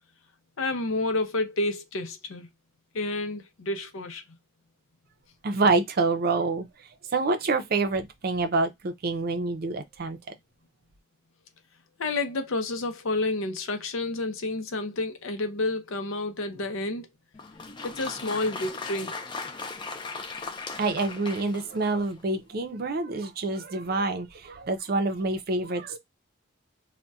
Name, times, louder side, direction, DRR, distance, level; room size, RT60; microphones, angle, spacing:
voice 1, 0.6-2.5 2.9-4.2 12.0-17.1 17.8-19.2, left 2 dB, 75° left, 0.6 m, -30 dB
voice 2, 5.4-6.7 7.1-10.2 20.8-26.0, right 3 dB, 45° right, 0.5 m, -27 dB
Applause, 17.3-22.2, left 4 dB, 20° left, 0.3 m, -38 dB
3.9 x 2.1 x 2.3 m
head